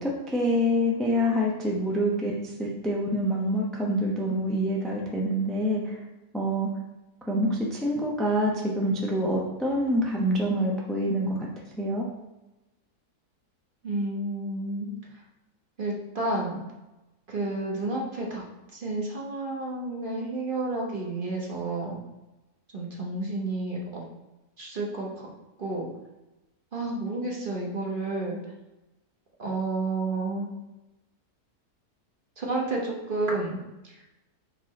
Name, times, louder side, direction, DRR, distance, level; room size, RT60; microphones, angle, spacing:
voice 1, 0.0-2.3 2.6-6.0 6.3-6.7 7.3-11.5 11.8-12.0, equal, ahead, -3 dB, 0.5 m, -26 dB
voice 2, 13.8-14.9 15.8-16.6 17.3-18.4 18.7-22.0 22.7-24.0 24.6-25.3 25.6-25.9 26.7-28.4 29.4-30.5 32.4-33.6 33.8-33.9, right 2 dB, 40° right, -2 dB, 1.1 m, -30 dB
4.9 x 4.6 x 4.1 m, 1.0 s
omnidirectional pair, 1.6 m